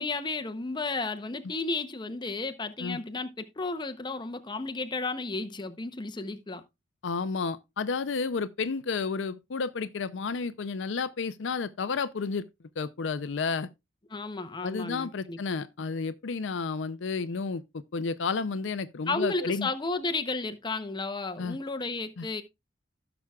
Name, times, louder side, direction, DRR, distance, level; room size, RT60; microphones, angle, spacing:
voice 1, 0.0-6.6 14.1-15.4 19.1-22.4, left 3 dB, 25° left, 0.7 m, -33 dB
voice 2, 7.0-12.5 12.8-13.7 14.6-17.6 17.9-19.7 21.4-21.6 22.2-22.3, left 4 dB, 70° left, 0.5 m, -31 dB
16.0 x 6.1 x 2.3 m
head